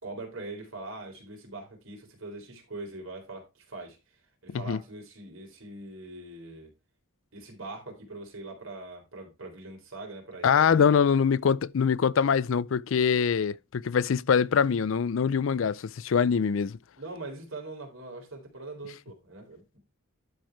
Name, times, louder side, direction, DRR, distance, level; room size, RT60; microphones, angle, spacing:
voice 1, 0.0-4.0 4.4-6.7 7.3-11.0 17.0-19.8, right 2 dB, 75° right, 4.0 m, -42 dB
voice 2, 4.5-4.8 10.4-16.8, left 6 dB, 70° left, 0.4 m, -24 dB
12.0 x 4.6 x 4.6 m
head